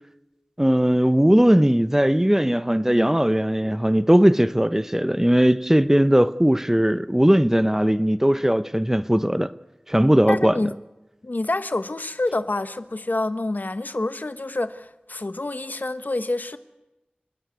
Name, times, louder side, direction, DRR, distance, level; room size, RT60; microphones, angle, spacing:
voice 1, 0.6-9.5 9.9-10.6, equal, 10° right, 0.7 m, -19 dB
voice 2, 10.3-10.7 11.2-16.6, left 2 dB, 60° left, 1.1 m, -27 dB
28.5 x 13.0 x 9.4 m
wide cardioid pair, 45°, 3 cm